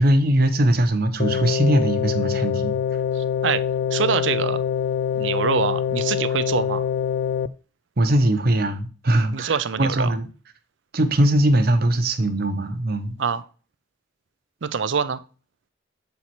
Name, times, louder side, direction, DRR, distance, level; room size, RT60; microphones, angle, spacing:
voice 1, 0.0-2.8 8.0-10.3 10.9-13.1, right 1 dB, 55° right, 0.9 m, -20 dB
sound 1, 1.2-7.5, left 8 dB, 60° left, 0.3 m, -24 dB
voice 2, 3.2-3.6 3.9-4.6 5.1-6.8 9.3-10.1 13.2-13.4 14.6-15.2, right 6 dB, 75° right, 0.6 m, -25 dB
7.1 x 4.7 x 4.3 m
head